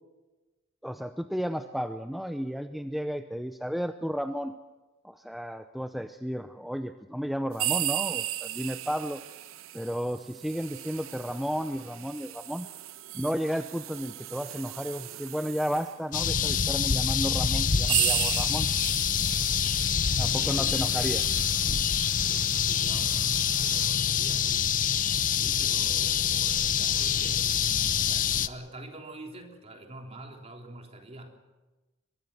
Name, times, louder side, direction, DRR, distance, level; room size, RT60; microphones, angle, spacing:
voice 1, 0.8-4.5 5.0-9.2 9.7-12.7 13.1-18.7 20.2-21.3, equal, ahead, 8 dB, 0.6 m, -33 dB
sound 1, 7.5-16.0 16.8-16.9 17.5-23.9, right 14 dB, 70° right, 0.8 m, -36 dB
sound 2, 16.1-28.5, left 8 dB, 40° left, 0.8 m, -26 dB
voice 2, 20.3-21.4 22.2-24.8 25.3-27.5 27.9-31.4, right 1 dB, 30° right, 2 dB, 3.4 m, -46 dB
22.5 x 22.0 x 7.1 m, 1.2 s
head